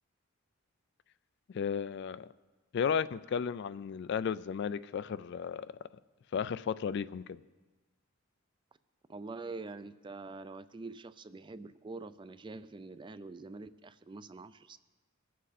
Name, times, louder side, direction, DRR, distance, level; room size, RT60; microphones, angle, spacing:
voice 1, 1.5-2.3 2.7-5.7 6.3-7.4, left 7 dB, 55° left, 16 dB, 0.3 m, -34 dB
voice 2, 9.1-14.8, right 3 dB, 25° right, 14 dB, 0.4 m, -45 dB
22.0 x 7.5 x 4.2 m, 1.3 s
head